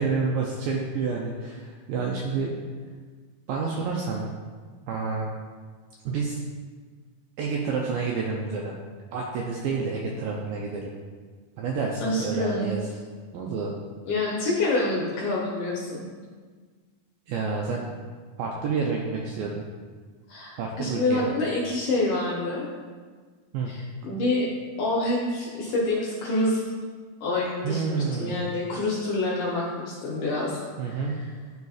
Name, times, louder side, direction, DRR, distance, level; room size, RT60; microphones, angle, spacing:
voice 1, 0.0-2.6 3.5-4.3 4.9-5.3 6.1-6.4 7.4-8.7 9.1-10.9 11.6-12.9 13.3-13.7 17.3-17.9 18.4-19.6 20.6-21.4 23.5-23.7 27.6-28.4 30.8-31.2, right 4 dB, 85° right, -1 dB, 2.0 m, -29 dB
voice 2, 12.0-12.9 14.1-16.0 20.3-22.7 23.7-24.5 24.8-26.6 27.2-30.6 30.9-31.0, left 2 dB, 70° left, -5 dB, 1.9 m, -27 dB
11.5 x 4.1 x 2.4 m, 1.5 s
omnidirectional pair, 4.5 m